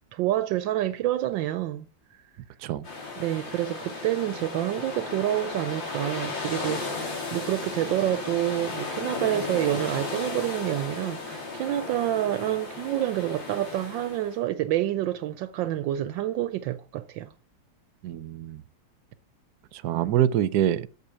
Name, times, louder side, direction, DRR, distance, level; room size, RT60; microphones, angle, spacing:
voice 1, 0.1-1.9 3.2-17.3 19.9-20.1, right 13 dB, 85° right, 1.4 m, -28 dB
sound 1, 2.8-14.4, left 3 dB, 85° left, 4.2 m, -35 dB
voice 2, 18.0-18.6 19.7-20.9, right 11 dB, 65° right, 1.1 m, -25 dB
8.3 x 7.0 x 8.5 m
omnidirectional pair, 2.0 m